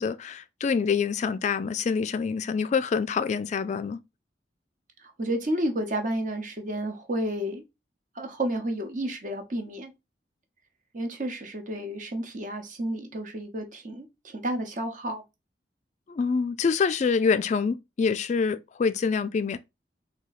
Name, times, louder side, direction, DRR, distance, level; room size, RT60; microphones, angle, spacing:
voice 1, 0.0-4.0 16.1-19.6, left 5 dB, 40° left, 0.3 m, -26 dB
voice 2, 5.0-7.6 8.1-9.9 10.9-15.2, right 1 dB, 45° right, 1.0 m, -31 dB
3.7 x 2.8 x 4.0 m
head